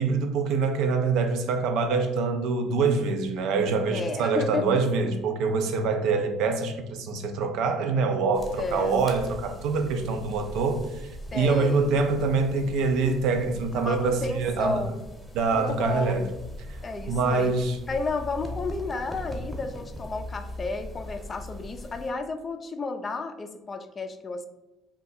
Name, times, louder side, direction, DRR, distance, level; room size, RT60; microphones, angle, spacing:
voice 1, 0.0-14.8 15.3-16.3 16.7-16.8 17.1-17.8, right 4 dB, 75° right, 0.4 m, -25 dB
voice 2, 3.9-4.8 8.6-8.9 11.3-11.9 13.8-15.0 15.5-16.3 16.8-17.5 17.9-24.4, left 3 dB, 35° left, 0.4 m, -32 dB
sound 1, 8.3-22.1, equal, 5° left, 0.9 m, -41 dB
2.6 x 2.3 x 4.0 m
supercardioid pair, 75°, 0 cm